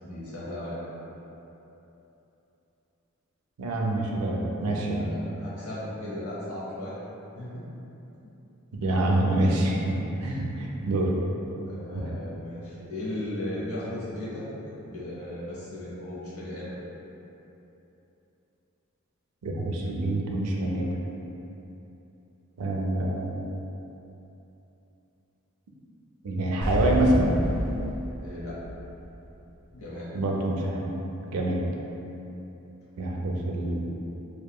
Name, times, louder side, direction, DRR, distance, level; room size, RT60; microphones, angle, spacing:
voice 1, 0.0-0.9 5.0-7.0 7.3-7.6 8.2-8.3 10.0-10.4 11.7-14.5 14.9-16.8 28.2-28.6 29.7-30.1, left 1 dB, 70° left, -8 dB, 0.7 m, -36 dB
voice 2, 3.6-5.0 8.7-11.1 11.9-12.1 19.4-20.9 22.6-23.5 26.2-27.4 30.1-31.0 31.3-31.6 33.0-33.8, right 1 dB, 85° right, -1 dB, 0.4 m, -26 dB
sound 1, 26.6-29.6, equal, 35° right, 0.6 m, -30 dB
2.7 x 2.4 x 2.2 m, 3.0 s
head